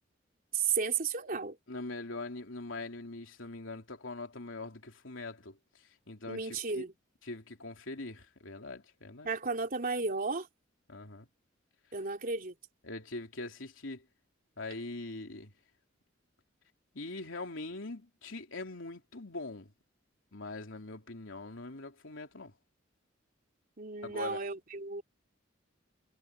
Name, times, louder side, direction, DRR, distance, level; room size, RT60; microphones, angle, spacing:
voice 1, 0.5-1.6 6.3-6.9 9.2-10.5 11.9-12.5 23.8-25.0, right 4 dB, 45° right, 3.2 m, -33 dB
voice 2, 1.7-6.9 7.2-9.3 10.9-11.3 12.8-14.0 14.6-15.5 16.9-19.7 20.3-22.5 24.0-24.4, left 2 dB, 80° left, 3.2 m, -42 dB
head